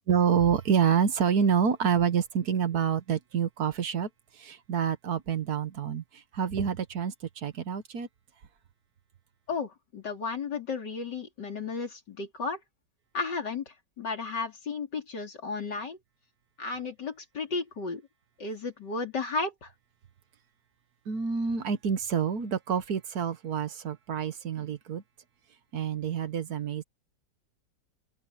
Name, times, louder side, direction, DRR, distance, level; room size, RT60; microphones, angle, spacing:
voice 1, 0.1-4.1 4.4-6.0 6.3-8.1 21.1-25.0 25.7-26.8, right 7 dB, 60° right, 1.6 m, -27 dB
voice 2, 9.5-12.6 13.1-13.6 14.0-16.0 16.6-18.0 18.4-19.7, left 4 dB, 70° left, 4.0 m, -33 dB
open air
omnidirectional pair, 1.9 m